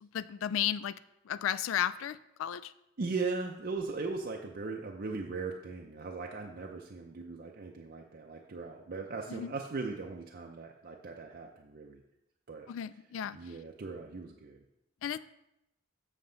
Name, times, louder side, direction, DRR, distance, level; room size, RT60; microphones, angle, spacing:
voice 1, 0.1-0.9 1.3-2.7 9.3-9.5 12.7-13.4 15.0-15.2, left 10 dB, 75° left, 16 dB, 0.3 m, -33 dB
voice 2, 3.0-12.0 12.5-12.7 13.3-14.6, right 4 dB, 45° right, 1 dB, 0.5 m, -38 dB
7.4 x 6.8 x 3.8 m, 0.86 s
head